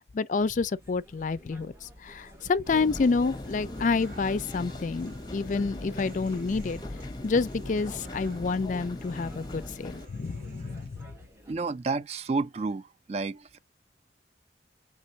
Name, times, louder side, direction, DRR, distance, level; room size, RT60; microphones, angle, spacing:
voice 1, 0.0-6.8 7.2-11.1, left 4 dB, 45° left, 0.4 m, -29 dB
sound 1, 0.8-11.5, equal, 15° right, 1.3 m, -53 dB
sound 2, 2.7-10.1, left 1 dB, 25° left, 0.8 m, -39 dB
Human voice / Acoustic guitar, 3.0-11.0, right 1 dB, 50° right, 2.1 m, -52 dB
voice 2, 11.5-12.8 13.1-13.6, right 3 dB, 35° right, 0.4 m, -30 dB
5.4 x 3.3 x 2.7 m
head